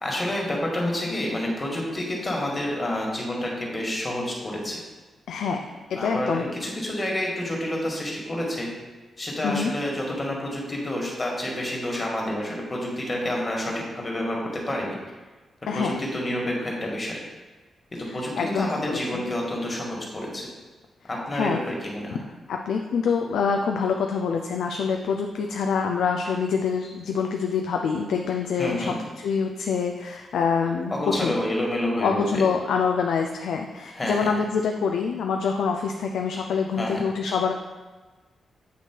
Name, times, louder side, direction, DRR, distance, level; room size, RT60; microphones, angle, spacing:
voice 1, 0.0-4.8 6.0-8.7 9.2-15.0 15.6-17.2 17.9-20.5 21.1-22.2 28.6-29.0 30.9-32.4 33.9-34.3 36.7-37.0, left 1 dB, 30° left, -2 dB, 1.8 m, -29 dB
voice 2, 5.3-5.6 5.9-6.4 9.4-9.7 15.7-16.0 18.4-19.2 21.3-21.6 22.5-30.9 31.2-31.4 32.0-37.5, left 6 dB, 85° left, 3 dB, 0.4 m, -26 dB
8.3 x 3.0 x 4.5 m, 1.3 s
cardioid pair, 75°, 0 cm